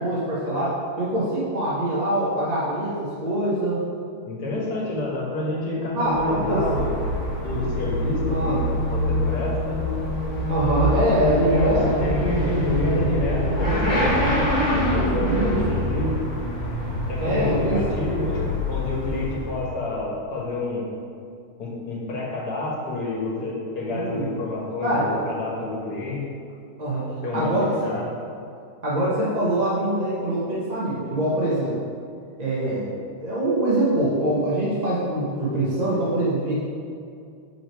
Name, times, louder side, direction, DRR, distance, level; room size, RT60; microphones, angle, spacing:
voice 1, 0.0-3.8 5.9-6.6 8.3-8.6 10.5-12.0 14.7-15.6 17.2-17.8 23.9-24.3 24.8-25.1 26.8-27.0 27.3-27.7 28.8-31.7 32.4-32.8 33.2-36.5, right 1 dB, 30° right, -8 dB, 1.0 m, -24 dB
voice 2, 4.2-6.9 7.4-9.8 10.7-16.2 17.1-20.9 21.6-26.2 27.2-28.1 32.8-32.9, left 2 dB, 85° left, -3 dB, 1.8 m, -29 dB
Motorcycle / Accelerating revving vroom, 6.0-19.8, left 1 dB, 25° left, 1.5 m, -25 dB
5.5 x 4.8 x 4.5 m, 2.4 s
omnidirectional pair, 1.7 m